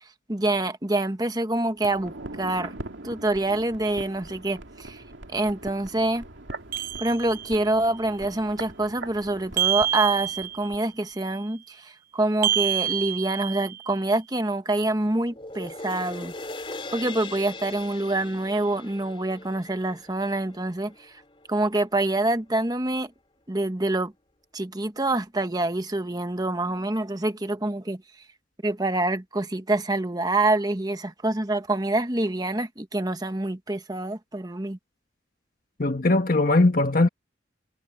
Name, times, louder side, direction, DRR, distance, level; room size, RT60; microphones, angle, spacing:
voice 1, 0.3-2.7 3.0-5.0 5.3-6.2 7.0-16.3 16.9-21.1 21.5-23.1 23.5-24.1 24.5-28.0 28.6-34.8, right 2 dB, 20° right, 1.2 m, -26 dB
sound 1, 1.8-10.8 11.1-11.2, right 2 dB, 80° right, 2.6 m, -42 dB
sound 2, 6.7-7.7 9.6-10.8 12.4-13.9, right 11 dB, 50° right, 0.6 m, -27 dB
sound 3, 15.3-21.8 22.3-22.4, left 2 dB, 30° left, 3.0 m, -40 dB
voice 2, 35.8-37.1, left 2 dB, 45° left, 1.3 m, -20 dB
head